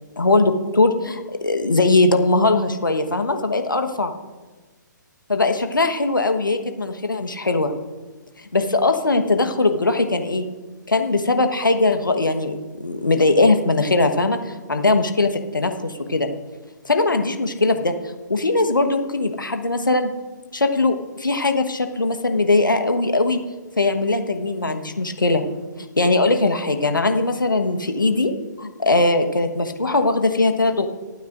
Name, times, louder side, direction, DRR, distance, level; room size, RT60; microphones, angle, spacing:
voice 1, 0.2-4.1 5.3-7.7 8.5-10.5 10.9-16.3 16.8-20.1 20.5-23.4 23.8-25.4 26.0-28.3 28.6-30.9, left 2 dB, 85° left, 6 dB, 1.3 m, -20 dB
24.5 x 9.3 x 2.6 m, 1.3 s
figure-of-eight pair, 130°, 10 cm